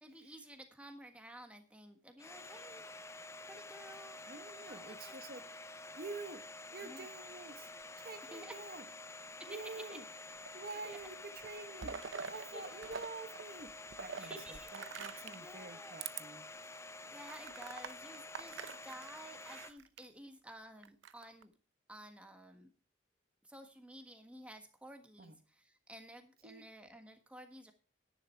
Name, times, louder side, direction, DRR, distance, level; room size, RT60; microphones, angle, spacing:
voice 1, 0.0-2.9 3.4-4.2 4.5-5.1 6.8-7.1 8.3-8.6 9.4-9.5 9.9-10.0 10.8-11.0 12.5-12.9 14.2-14.7 15.1-16.0 17.0-21.5 21.9-22.7 23.4-27.7, right 1 dB, 5° right, 5 dB, 1.5 m, -53 dB
Domestic sounds home sounds, 2.2-19.7, left 2 dB, 15° left, 0.5 m, -50 dB
voice 2, 4.3-5.4 6.0-6.4 6.7-7.7 8.0-8.8 9.5-10.1 10.5-16.5 25.2-25.4 26.4-26.6, right 3 dB, 50° right, 8 dB, 1.0 m, -48 dB
sound 1, 10.4-11.1 11.4-13.1 13.3-15.5 16.0-16.2 16.7-16.8 17.3-20.0 20.8-21.4, right 6 dB, 90° right, 0.7 m, -46 dB
10.5 x 10.5 x 4.4 m, 0.35 s
head